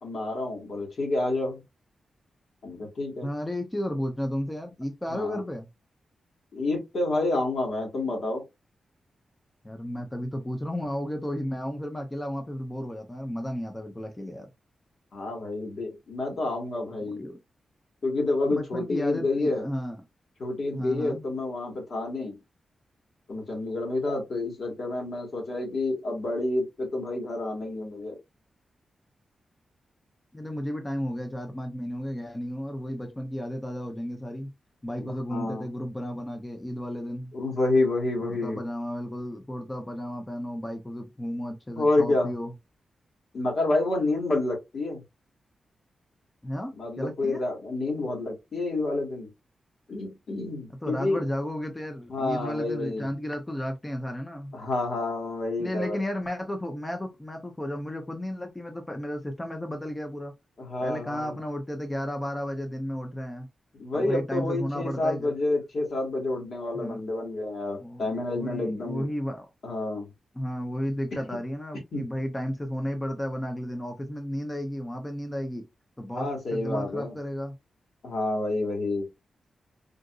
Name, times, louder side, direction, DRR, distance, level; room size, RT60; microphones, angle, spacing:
voice 1, 0.0-1.6 2.6-3.3 5.1-5.4 6.5-8.4 15.1-17.2 18.0-19.6 20.4-22.4 23.3-28.2 35.0-35.7 37.3-38.6 41.8-42.3 43.3-45.0 46.8-49.3 49.9-51.2 52.1-53.1 54.5-56.0 60.6-61.4 63.8-69.1 69.6-70.1 71.1-71.2 71.9-72.1 76.1-77.1 78.0-79.1, left 2 dB, 65° left, 1.7 m, -29 dB
voice 2, 3.2-5.7 9.6-14.5 16.3-16.4 17.2-17.4 18.5-20.0 20.7-21.2 30.3-34.5 34.8-37.3 38.2-42.5 46.4-47.4 50.8-54.5 55.6-60.3 60.8-63.5 63.9-65.3 66.7-67.0 67.8-69.5 70.3-75.7 76.0-77.6, equal, 15° left, 0.6 m, -33 dB
3.8 x 2.5 x 2.3 m
cardioid pair, 85°, 0 cm